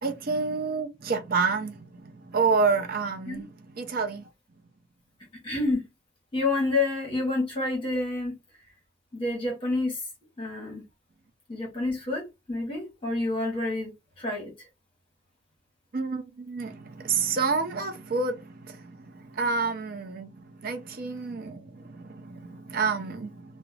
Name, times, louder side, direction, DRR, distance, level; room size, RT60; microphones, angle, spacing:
voice 1, 0.0-3.5 3.8-4.3 15.9-23.6, right 4 dB, 50° right, 0.5 m, -29 dB
voice 2, 5.4-5.9 6.3-8.4 9.1-10.1 10.4-10.8 11.5-14.7, left 2 dB, 30° left, 0.9 m, -29 dB
2.3 x 2.0 x 3.1 m
head